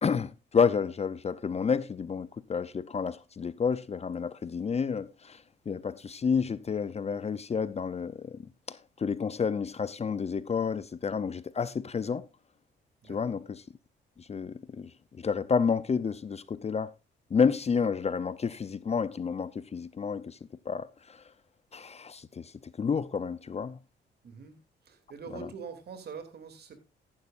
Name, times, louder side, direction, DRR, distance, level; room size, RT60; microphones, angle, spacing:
voice 1, 0.0-5.4 5.7-8.4 8.7-12.2 13.1-13.6 14.2-14.9 15.2-16.9 17.3-20.4 20.7-21.2 21.7-22.5 22.8-23.8 25.3-25.5, left 6 dB, 30° left, 0.6 m, -30 dB
voice 2, 24.2-24.6 24.8-26.8, right 6 dB, 55° right, 2.8 m, -43 dB
14.0 x 11.5 x 2.5 m
cardioid pair, 90°, 20 cm